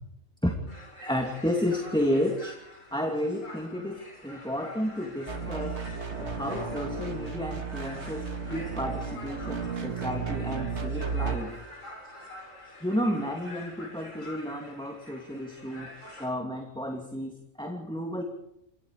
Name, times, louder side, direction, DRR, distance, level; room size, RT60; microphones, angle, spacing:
sound 1, 0.7-16.3, left 1 dB, 85° left, 8.6 m, -46 dB
voice 1, 1.0-2.6 2.9-5.9 6.3-11.6 12.8-15.9 16.2-18.2, equal, 5° left, 2 dB, 2.7 m, -32 dB
sound 2, 5.3-11.4, right 5 dB, 60° right, 2.4 m, -34 dB
30.0 x 25.0 x 5.0 m, 0.78 s
omnidirectional pair, 1.3 m